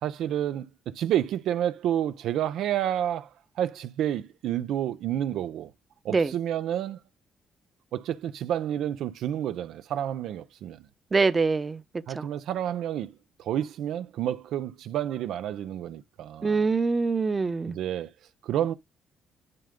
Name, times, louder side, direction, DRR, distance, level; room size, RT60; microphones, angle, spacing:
voice 1, 0.0-3.3 3.6-5.7 6.0-7.0 7.9-10.9 12.1-16.7 17.7-18.1 18.4-18.7, right 11 dB, 80° right, 0.5 m, -30 dB
voice 2, 11.1-11.8 12.1-12.3 16.4-17.8, right 4 dB, 30° right, 0.8 m, -24 dB
11.0 x 3.7 x 3.6 m
cardioid pair, 90°, 0 cm